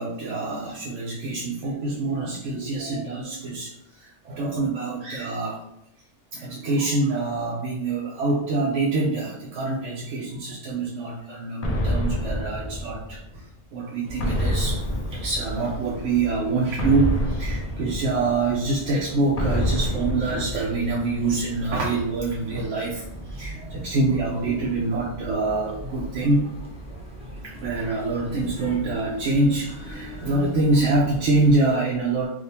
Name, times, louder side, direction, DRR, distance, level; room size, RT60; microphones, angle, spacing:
voice 1, 0.0-3.7 4.0-5.6 6.3-13.2 13.7-14.8 15.1-23.0 23.3-26.5 27.4-32.3, right 3 dB, 80° right, -4 dB, 1.0 m, -25 dB
sound 1, 11.6-13.4 14.2-15.9 16.8-18.6 19.4-21.1, equal, 75° left, 0.3 m, -27 dB
sound 2, 14.0-31.6, right 1 dB, 10° right, 0.4 m, -40 dB
3.5 x 2.6 x 2.7 m, 0.78 s
omnidirectional pair, 1.3 m